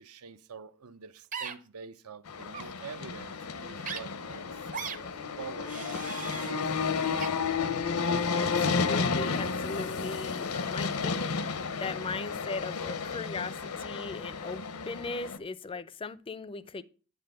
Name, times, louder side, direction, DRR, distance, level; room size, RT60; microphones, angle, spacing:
voice 1, 0.0-7.0 10.7-10.8, right 5 dB, 80° right, 0.6 m, -47 dB
sound 1, 1.3-1.5 2.5-2.7 3.8-4.0 4.7-5.0 5.6-6.5 7.2-7.3, right 6 dB, 35° right, 0.7 m, -37 dB
sound 2, 2.3-15.4, left 5 dB, 75° left, 0.7 m, -32 dB
voice 2, 8.3-16.8, left 3 dB, 25° left, 0.4 m, -39 dB
9.6 x 4.1 x 6.7 m
head